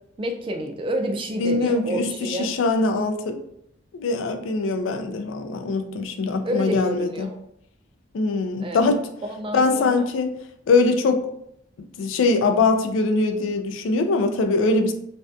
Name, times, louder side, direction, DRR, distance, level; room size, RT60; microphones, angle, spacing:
voice 1, 0.2-2.5 6.4-7.4 8.6-8.9 9.2-10.1, right 1 dB, 25° right, 4 dB, 0.3 m, -29 dB
voice 2, 1.4-3.4 3.9-7.3 8.1-9.0 9.5-10.3 10.7-11.2 12.0-14.9, left 3 dB, 85° left, 6 dB, 0.3 m, -22 dB
2.5 x 2.2 x 2.4 m, 0.76 s
head